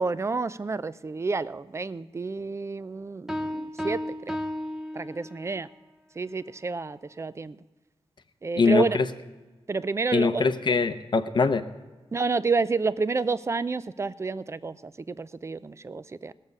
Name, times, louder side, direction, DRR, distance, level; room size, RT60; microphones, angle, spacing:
voice 1, 0.0-4.4 4.9-5.7 6.2-7.6 8.4-9.0 9.7-10.5 12.1-16.3, right 4 dB, 25° right, 15 dB, 0.4 m, -29 dB
sound 1, 3.3-5.7, left 1 dB, 5° right, 0.8 m, -33 dB
voice 2, 8.6-9.0 10.1-11.6, left 4 dB, 45° left, 8 dB, 0.7 m, -23 dB
19.0 x 7.3 x 5.2 m, 1.2 s
wide cardioid pair, 115°, 11 cm